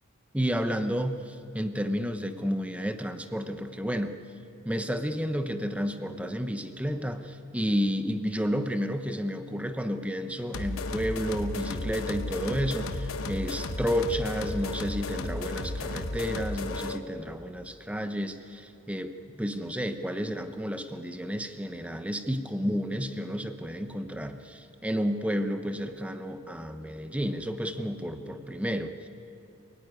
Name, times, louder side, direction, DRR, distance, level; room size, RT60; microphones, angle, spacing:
voice 1, 0.3-4.1 4.6-19.1 19.4-29.1, equal, 5° right, 8 dB, 0.9 m, -31 dB
sound 1, 10.5-17.1, left 2 dB, 65° left, 1.0 m, -34 dB
26.5 x 17.0 x 9.7 m, 2.7 s
head